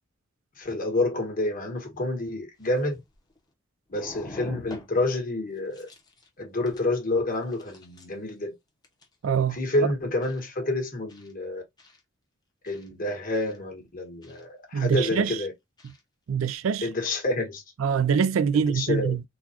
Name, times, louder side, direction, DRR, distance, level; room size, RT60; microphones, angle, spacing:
voice 1, 0.6-3.0 3.9-5.9 6.4-8.5 9.5-11.6 12.6-15.5 16.8-17.6 18.5-19.2, left 2 dB, 45° left, 1.4 m, -28 dB
sound 1, 2.0-2.1 2.6-3.5 3.9-5.2 5.6-6.3 6.7-6.9 7.3-8.3 8.8-9.2 10.2-10.4 11.1-11.3 11.8-12.0 12.6-12.9 13.3-13.6 14.2-14.4 14.9-15.1 15.8-16.0 16.5-16.6, left 1 dB, 20° left, 0.9 m, -46 dB
voice 2, 9.2-9.6 14.7-15.4 15.8-15.9 16.3-16.9 17.8-19.2, right 7 dB, 85° right, 0.4 m, -24 dB
4.0 x 2.3 x 2.8 m
head